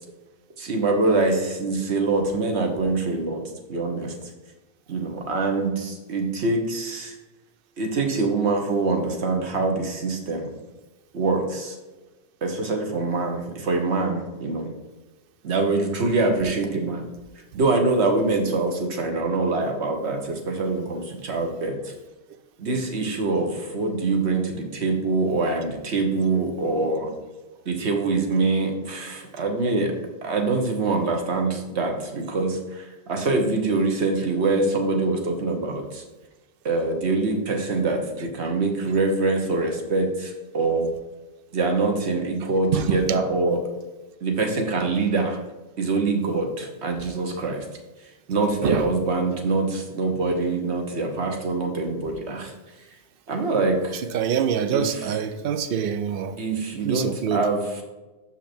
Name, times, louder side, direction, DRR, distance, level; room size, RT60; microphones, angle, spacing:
voice 1, 0.6-4.1 4.9-7.1 7.8-10.5 11.1-11.8 12.4-14.7 15.4-17.1 17.5-21.8 22.6-27.1 27.7-29.9 30.2-36.0 36.6-40.9 41.5-43.6 44.2-45.4 45.8-47.6 48.3-52.5 53.3-54.0 54.7-54.9 56.4-57.6, right 3 dB, 80° right, 1.4 m, -24 dB
voice 2, 54.1-56.4 56.8-57.5, right 8 dB, 60° right, 0.7 m, -25 dB
5.9 x 5.7 x 4.4 m
omnidirectional pair, 1.1 m